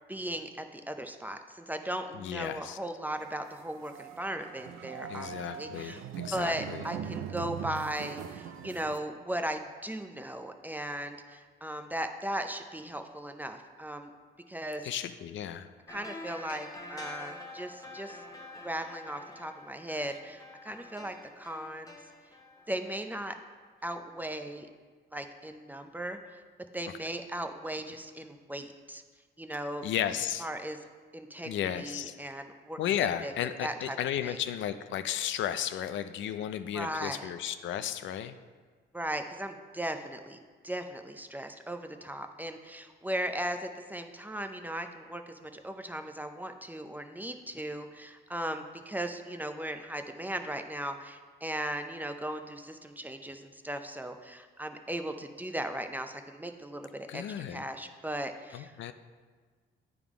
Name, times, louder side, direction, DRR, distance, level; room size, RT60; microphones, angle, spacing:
voice 1, 0.1-6.0 6.3-14.1 14.5-14.9 15.9-18.2 18.6-22.0 22.7-23.4 23.8-24.7 25.1-26.4 26.7-29.0 29.4-29.8 30.4-30.8 31.1-32.8 33.2-33.3 33.6-34.0 34.2-34.4 36.7-37.3 38.9-57.2 57.5-58.7, right 1 dB, 10° right, 7 dB, 0.5 m, -37 dB
voice 2, 2.2-2.8 5.1-6.8 14.8-15.7 29.8-30.5 31.4-32.2 32.8-38.3 57.1-57.6 58.5-58.9, left 10 dB, 70° left, 10 dB, 0.4 m, -34 dB
sound 1, 3.2-9.0, right 8 dB, 85° right, 0.4 m, -41 dB
sound 2, 15.9-23.5 23.8-23.9, left 2 dB, 20° left, 0.9 m, -47 dB
9.3 x 3.6 x 4.8 m, 1.5 s
cardioid pair, 90°, 20 cm